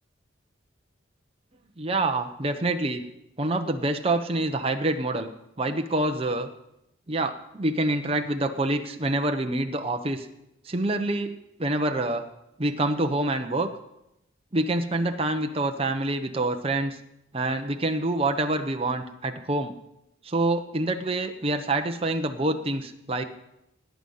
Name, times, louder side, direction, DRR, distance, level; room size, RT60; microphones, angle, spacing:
voice 1, 1.8-3.0 3.4-5.3 5.6-6.5 7.1-10.3 10.6-11.3 11.6-12.2 12.6-13.7 14.5-17.0 17.3-19.7 20.2-23.3, right 2 dB, 30° right, 5 dB, 0.9 m, -26 dB
18.0 x 9.3 x 5.5 m, 0.84 s
head